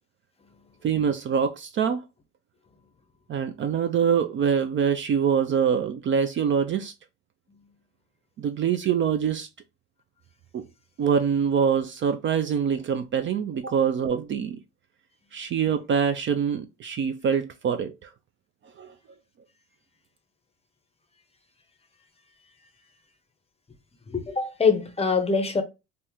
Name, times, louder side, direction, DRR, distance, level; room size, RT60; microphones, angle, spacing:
voice 1, 0.8-2.0 3.3-6.9 8.4-9.5 10.5-10.6 11.0-14.6 15.3-18.1 18.8-18.9, right 7 dB, 40° right, 0.4 m, -24 dB
voice 2, 24.1-25.6, left 5 dB, 20° left, 0.6 m, -23 dB
2.8 x 2.1 x 3.6 m
supercardioid pair, 90°, 32 cm